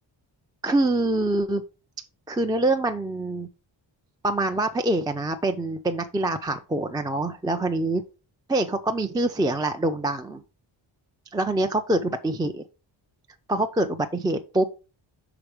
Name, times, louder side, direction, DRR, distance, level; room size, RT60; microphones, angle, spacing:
voice 1, 0.6-1.6 2.3-3.5 4.2-8.0 8.5-10.4 11.3-12.6 13.5-14.7, right 2 dB, 10° right, 6 dB, 0.3 m, -25 dB
5.9 x 4.4 x 4.8 m, 0.32 s
wide cardioid pair, 145°, 48 cm